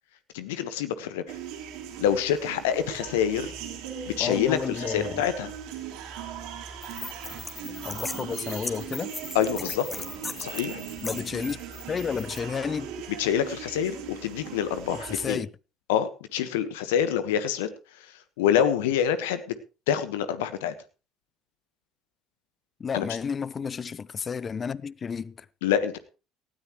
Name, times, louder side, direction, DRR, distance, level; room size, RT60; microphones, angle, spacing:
voice 1, 0.3-1.4 2.0-3.5 4.1-5.5 9.3-9.9 10.4-10.8 13.2-15.4 15.9-17.7 17.9-18.1 18.4-19.6 19.9-20.7 22.9-23.0 25.6-26.0, left 9 dB, 80° left, 1.3 m, -26 dB
sound 1, 1.3-15.3, right 8 dB, 75° right, 3.6 m, -39 dB
voice 2, 4.2-5.3 7.8-9.1 11.0-11.6 11.9-12.9 14.9-15.5 22.8-25.5, left 6 dB, 40° left, 0.7 m, -31 dB
sound 2, 6.8-12.4, left 2 dB, 20° left, 2.0 m, -38 dB
18.5 x 13.0 x 3.1 m
hypercardioid pair, 60°, 0 cm